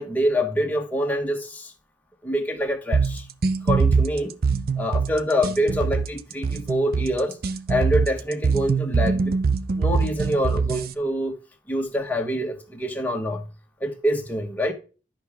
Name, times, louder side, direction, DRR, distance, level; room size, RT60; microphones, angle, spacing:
voice 1, 0.0-1.7 2.2-3.3 3.6-4.4 4.8-7.4 7.7-9.3 9.7-11.3 11.7-13.4 13.8-14.7, equal, 10° left, 1.2 m, -25 dB
sound 1, 2.9-10.9, right 4 dB, 55° right, 0.5 m, -23 dB
11.0 x 5.8 x 3.5 m
head